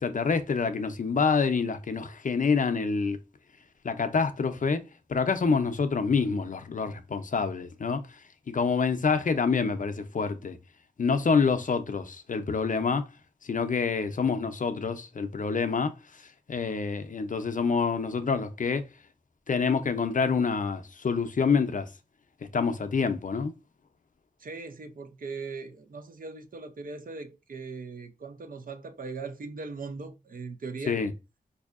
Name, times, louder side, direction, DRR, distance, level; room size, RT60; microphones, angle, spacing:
voice 1, 0.0-3.2 3.8-4.8 5.1-8.0 8.5-10.6 11.0-13.1 13.4-15.9 16.5-18.9 19.5-21.9 22.5-23.5 30.9-31.1, left 5 dB, 55° left, 0.5 m, -27 dB
voice 2, 24.4-31.0, right 4 dB, 65° right, 0.5 m, -39 dB
4.2 x 2.6 x 2.4 m
cardioid pair, 50°, 16 cm